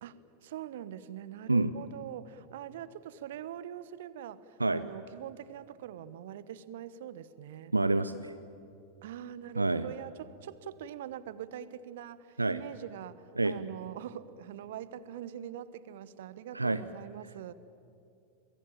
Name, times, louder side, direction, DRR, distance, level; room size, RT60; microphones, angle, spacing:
voice 1, 0.0-7.7 9.0-17.5, right 10 dB, 55° right, 16 dB, 1.1 m, -43 dB
voice 2, 7.7-8.3 9.6-9.9 12.4-12.6 13.4-13.5 16.5-16.8, right 2 dB, 80° right, 13 dB, 0.7 m, -27 dB
28.0 x 22.5 x 9.0 m, 2.5 s
figure-of-eight pair, 90°, 0 cm